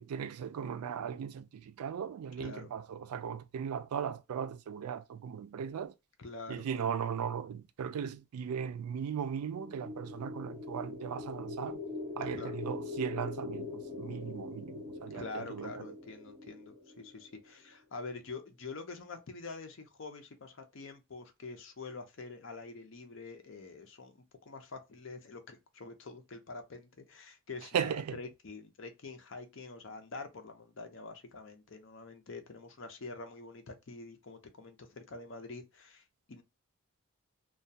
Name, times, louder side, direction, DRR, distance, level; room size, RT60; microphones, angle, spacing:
voice 1, 0.0-5.9 6.5-11.8 12.2-15.9 27.7-28.2, right 7 dB, 90° right, 0.3 m, -37 dB
voice 2, 2.4-2.7 6.2-6.9 12.3-12.6 15.1-36.4, left 3 dB, 55° left, 0.6 m, -46 dB
sound 1, 9.4-17.5, left 3 dB, 20° right, 0.8 m, -43 dB
2.2 x 2.2 x 2.6 m
head